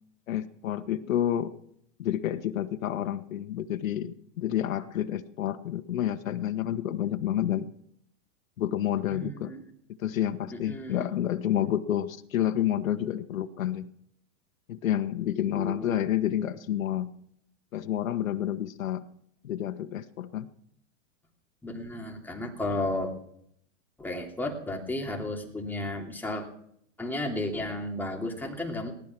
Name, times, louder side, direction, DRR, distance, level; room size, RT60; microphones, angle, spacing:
voice 1, 0.3-1.5 2.0-7.7 8.6-9.5 10.0-13.9 14.7-17.1 17.7-19.1 19.4-20.5, left 11 dB, 90° left, 10 dB, 1.3 m, -29 dB
voice 2, 9.1-9.6 10.5-11.1 15.5-16.1 21.6-23.1 24.0-26.4 27.0-28.9, left 1 dB, 5° left, 0 dB, 2.9 m, -33 dB
19.0 x 12.5 x 6.1 m, 0.68 s
supercardioid pair, 150°, 39 cm